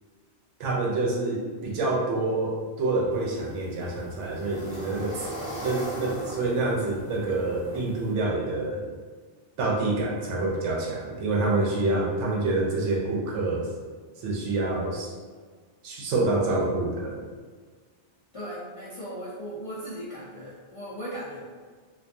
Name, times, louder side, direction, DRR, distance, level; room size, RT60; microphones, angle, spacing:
voice 1, 0.6-5.3 5.6-8.8 9.6-13.7 14.2-15.1 15.8-17.2, right 2 dB, 85° right, -2 dB, 0.9 m, -27 dB
sound 1, 3.1-8.1, equal, 10° right, 0.7 m, -39 dB
voice 2, 18.3-21.4, equal, 55° left, -10 dB, 0.3 m, -37 dB
2.3 x 2.3 x 2.5 m, 1.5 s
omnidirectional pair, 1.2 m